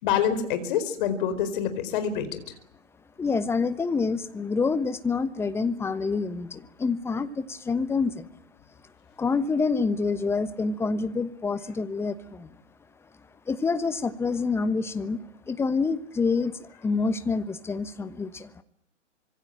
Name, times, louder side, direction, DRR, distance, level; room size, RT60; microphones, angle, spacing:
voice 1, 0.0-2.5, left 8 dB, 40° left, 10 dB, 4.7 m, -26 dB
voice 2, 3.2-8.3 9.2-12.5 13.5-15.2 15.5-18.5, left 4 dB, 5° left, 13 dB, 1.1 m, -27 dB
25.5 x 24.0 x 8.9 m, 0.69 s
figure-of-eight pair, 125°, 38 cm